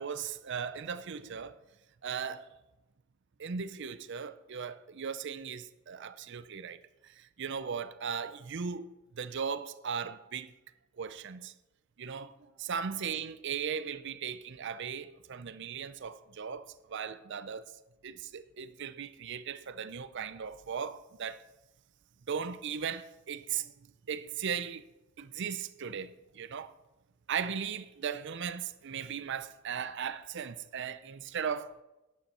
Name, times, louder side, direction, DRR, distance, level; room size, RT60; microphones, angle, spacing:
voice 1, 0.0-1.6 2.0-2.5 3.4-10.5 11.0-11.5 12.0-12.3 12.6-17.7 18.0-21.4 22.3-23.7 24.1-24.9 25.2-26.7 27.3-31.8, right 7 dB, 55° right, 0.5 m, -37 dB
11.5 x 9.7 x 4.3 m
head